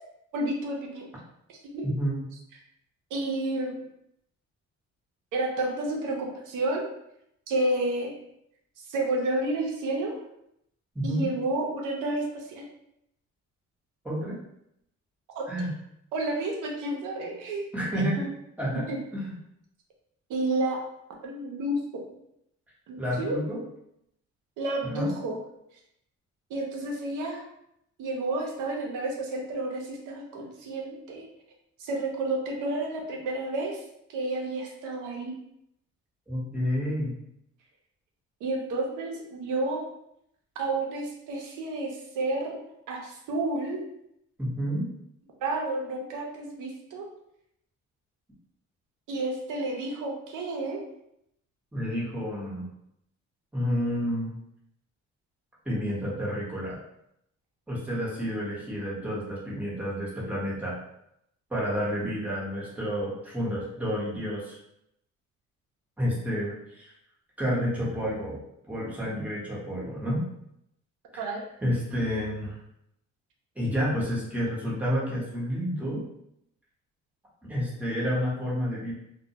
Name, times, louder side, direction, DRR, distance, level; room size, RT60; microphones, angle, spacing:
voice 1, 0.3-1.1 1.5-1.9 3.1-3.8 5.3-6.9 7.5-8.1 8.9-10.1 11.0-12.6 15.3-15.4 16.1-17.7 18.9-19.0 20.3-20.8 21.2-21.8 22.9-23.4 24.6-25.4 26.5-27.4 28.0-31.3 31.8-33.8 34.1-35.3 38.4-39.9 40.6-42.6 42.9-43.8 45.4-47.1 49.1-50.8 71.2-71.4, right 2 dB, 90° right, 1 dB, 0.6 m, -30 dB
voice 2, 1.8-2.2 10.9-11.2 14.0-14.4 15.5-15.7 17.7-18.3 18.6-18.9 19.1-19.3 23.0-23.6 24.9-25.1 36.3-37.1 44.4-44.9 51.7-52.7 53.5-54.3 55.6-56.8 57.7-60.8 61.5-64.6 66.0-66.9 67.4-68.4 68.7-70.2 71.1-72.6 73.6-76.0 77.4-78.9, equal, 5° right, -6 dB, 0.9 m, -30 dB
2.1 x 2.1 x 2.7 m, 0.77 s
cardioid pair, 90°, 30 cm